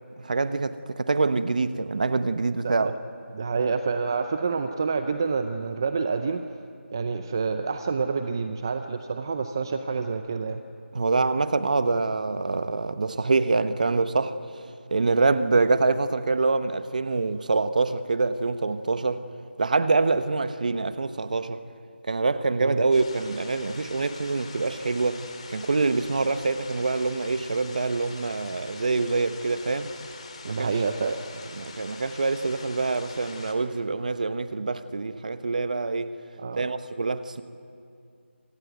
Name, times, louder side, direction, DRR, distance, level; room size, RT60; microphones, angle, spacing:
voice 1, 0.2-2.9 10.9-14.4 14.9-19.3 19.6-21.6 22.1-25.2 25.5-29.9 30.4-30.7 31.0-31.2 31.5-36.1 36.6-37.4, right 3 dB, 40° right, 1.0 m, -25 dB
voice 2, 2.6-2.9 3.3-6.4 6.9-10.6 22.6-22.8 30.4-31.2 36.4-36.7, right 4 dB, 20° right, 0.6 m, -28 dB
sound 1, 22.9-33.5, left 4 dB, 30° left, 2.4 m, -44 dB
26.5 x 18.0 x 9.1 m
figure-of-eight pair, 170°, 7 cm